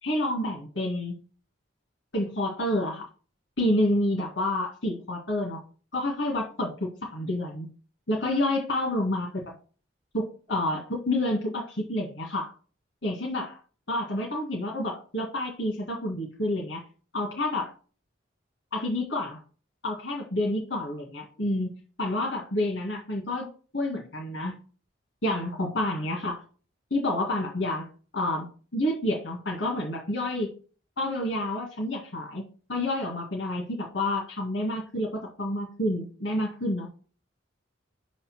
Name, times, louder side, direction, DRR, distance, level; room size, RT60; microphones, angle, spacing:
voice 1, 0.0-1.2 2.1-3.1 3.6-5.6 5.9-7.7 8.1-9.4 10.1-12.5 13.0-13.6 13.9-16.8 17.1-17.7 18.7-19.4 19.8-21.7 22.0-23.5 23.7-24.5 25.2-26.4 26.9-27.9 28.1-28.5 28.7-30.5 31.0-32.4 32.7-36.9, left 1 dB, 75° left, -1 dB, 1.8 m, -29 dB
5.8 x 4.2 x 6.0 m, 0.38 s
head